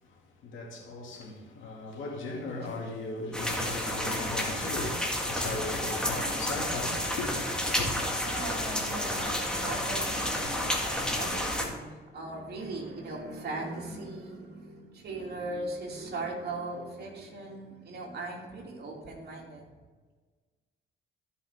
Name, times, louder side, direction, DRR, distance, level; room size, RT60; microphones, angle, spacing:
voice 1, 0.0-8.1, left 2 dB, 80° left, 2.3 m, -38 dB
sound 1, 3.3-11.7, left 1 dB, 5° left, 1.8 m, -31 dB
voice 2, 8.2-19.7, right 2 dB, 55° right, 2.7 m, -39 dB
14.0 x 5.5 x 3.6 m
cardioid pair, 90°, 20 cm